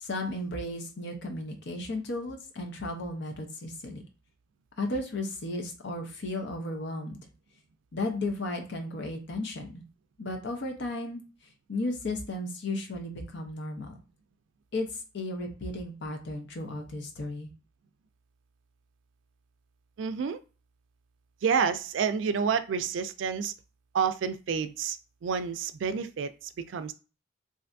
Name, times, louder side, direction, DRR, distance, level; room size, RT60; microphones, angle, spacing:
voice 1, 0.0-4.0 4.8-7.2 7.9-9.8 10.2-11.2 11.7-14.0 14.7-14.9 15.1-17.5, left 2 dB, 65° left, 4 dB, 0.7 m, -34 dB
voice 2, 20.0-20.4 21.4-23.5 23.9-25.0 25.2-26.9, right 6 dB, 70° right, 12 dB, 0.3 m, -29 dB
3.3 x 2.5 x 2.6 m, 0.34 s
head